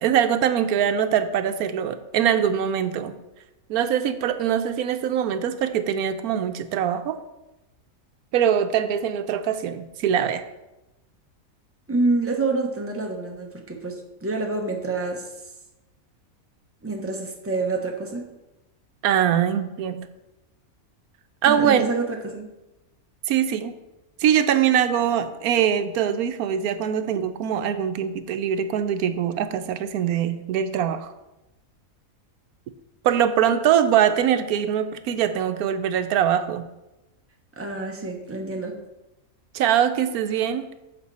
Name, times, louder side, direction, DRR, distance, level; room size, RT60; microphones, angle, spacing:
voice 1, 0.0-3.1 3.7-7.2 8.3-10.4 19.0-20.1 21.4-21.8 23.3-23.7 24.2-31.1 33.0-36.7 39.5-40.7, right 9 dB, 85° right, 10 dB, 1.1 m, -22 dB
voice 2, 11.9-15.3 16.8-18.3 21.4-22.5 37.6-38.8, right 3 dB, 10° right, 2 dB, 1.0 m, -27 dB
9.7 x 6.7 x 4.2 m, 0.97 s
omnidirectional pair, 1.5 m